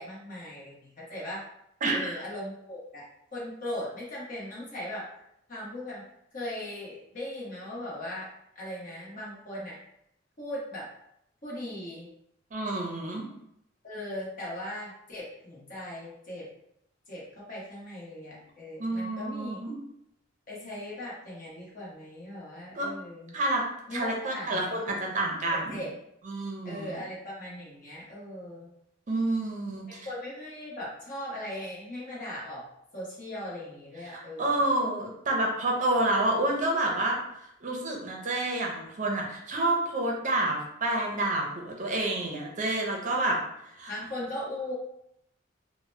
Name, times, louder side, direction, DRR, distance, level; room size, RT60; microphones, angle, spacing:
voice 1, 0.0-1.4 1.9-3.0 3.3-5.1 5.5-6.0 6.3-8.3 8.5-9.7 10.4-10.9 11.4-12.1 13.8-16.5 17.1-19.6 20.5-23.3 23.9-24.7 25.5-25.9 26.6-28.7 29.9-32.7 32.9-34.6 43.9-44.7, left 1 dB, 45° left, -6 dB, 1.0 m, -39 dB
voice 2, 1.8-2.2 12.5-13.2 18.8-19.7 22.7-22.9 23.3-23.6 23.9-25.8 26.3-26.9 29.1-30.1 34.1-37.2 37.6-43.4 43.8-43.9, right 2 dB, 40° right, 0 dB, 0.5 m, -29 dB
2.8 x 2.1 x 3.2 m, 0.77 s
head